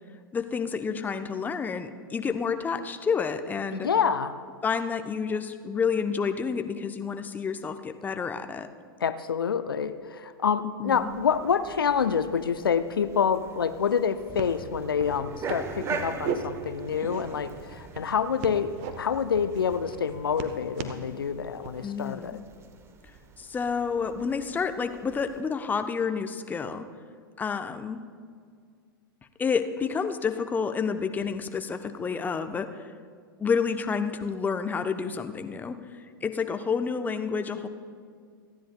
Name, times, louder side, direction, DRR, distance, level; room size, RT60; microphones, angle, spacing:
voice 1, 0.3-3.9 4.6-8.7 10.8-11.1 21.8-22.4 23.4-26.8 27.4-28.0 29.4-32.7 33.4-35.8 36.2-37.7, left 5 dB, 15° left, 8 dB, 0.7 m, -29 dB
voice 2, 3.7-4.3 9.0-22.4, left 7 dB, 75° left, 12 dB, 0.6 m, -27 dB
sound 1, 10.9-25.4, right 4 dB, 20° right, 0.9 m, -42 dB
sound 2, 13.3-13.4 13.7-14.1 14.4-14.6 15.0-15.2 15.5-16.4 16.9-17.5 17.9-18.9 19.4-19.6 19.9-21.0 21.6-21.9, right 7 dB, 45° right, 1.1 m, -36 dB
28.5 x 10.0 x 2.2 m, 2.1 s
figure-of-eight pair, 100°, 12 cm